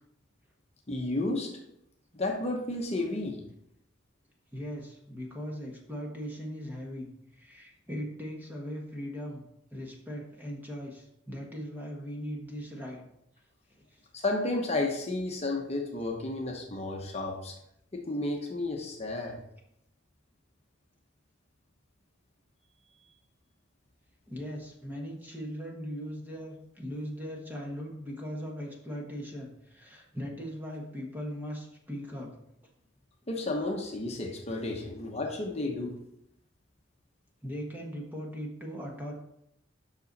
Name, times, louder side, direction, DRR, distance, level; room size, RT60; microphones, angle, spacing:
voice 1, 0.9-1.5 2.1-3.4 14.1-17.5 17.9-19.4 33.3-35.9, left 2 dB, 35° left, 1 dB, 1.0 m, -32 dB
voice 2, 4.5-9.4 9.7-13.0 13.7-14.0 24.3-32.3 37.4-39.1, equal, 10° right, -1 dB, 1.4 m, -39 dB
7.9 x 5.9 x 4.1 m, 0.78 s
head